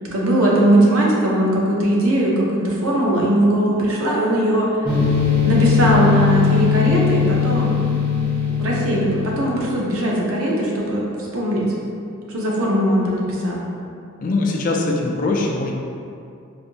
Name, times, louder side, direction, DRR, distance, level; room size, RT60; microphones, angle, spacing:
voice 1, 0.0-4.7 5.4-7.7 8.6-11.7 12.3-13.6, right 1 dB, 85° right, -4 dB, 0.7 m, -19 dB
sound 1, 4.8-9.7, left 6 dB, 25° left, 0.9 m, -20 dB
voice 2, 14.2-15.7, left 2 dB, 40° left, -1 dB, 0.4 m, -21 dB
4.2 x 2.6 x 2.8 m, 2.5 s
head